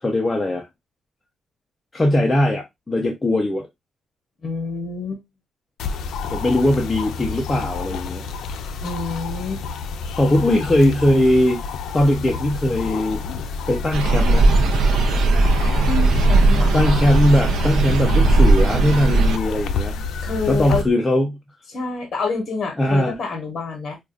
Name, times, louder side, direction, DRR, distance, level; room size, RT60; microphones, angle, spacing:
voice 1, 0.0-0.7 1.9-3.7 6.3-8.3 10.1-11.6 11.9-13.2 13.7-14.5 16.7-20.0 20.5-21.4 22.8-23.2, left 1 dB, 15° left, 0.6 m, -19 dB
voice 2, 4.4-5.2 8.8-9.6 15.8-17.1 20.2-20.9 21.7-24.0, left 4 dB, 40° left, 1.1 m, -27 dB
sound 1, 5.8-20.8, left 5 dB, 85° left, 0.4 m, -30 dB
sound 2, 13.9-19.4, right 2 dB, 80° right, 0.4 m, -17 dB
sound 3, 20.0-20.9, equal, 65° left, 0.8 m, -31 dB
4.7 x 2.4 x 2.4 m
cardioid pair, 145°, 0 cm